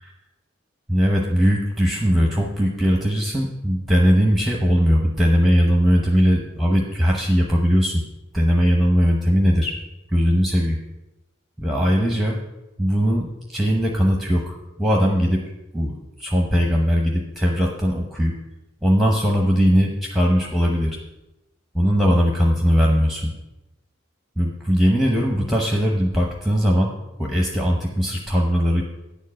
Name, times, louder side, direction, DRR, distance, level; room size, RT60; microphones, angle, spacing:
voice 1, 0.9-8.0 8.3-9.7 10.1-10.8 11.6-12.4 12.8-15.4 15.7-15.9 16.2-18.3 18.8-21.0 21.7-23.3 24.4-26.9 27.2-28.8, equal, ahead, -1 dB, 0.8 m, -19 dB
10.0 x 4.6 x 7.5 m, 0.97 s
head